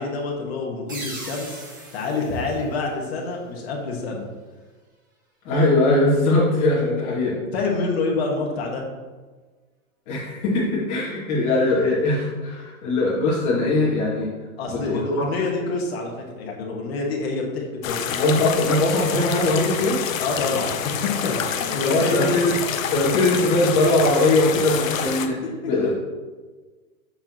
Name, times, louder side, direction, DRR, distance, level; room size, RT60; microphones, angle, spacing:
voice 1, 0.0-1.6 1.9-4.3 7.5-8.8 14.6-18.1 20.2-22.3 22.9-23.3 25.6-25.7, left 3 dB, 45° left, -1 dB, 1.6 m, -27 dB
sound 1, 0.9-3.5, right 2 dB, 15° right, 0.4 m, -39 dB
voice 2, 5.4-7.4 10.1-14.3 14.7-15.2 18.1-20.0 21.8-22.5 22.9-25.4 25.6-26.0, left 2 dB, 25° left, -7 dB, 2.1 m, -21 dB
sound 2, 17.8-25.3, left 8 dB, 65° left, 0.7 m, -27 dB
7.6 x 5.9 x 3.0 m, 1.3 s
hypercardioid pair, 170°, 42 cm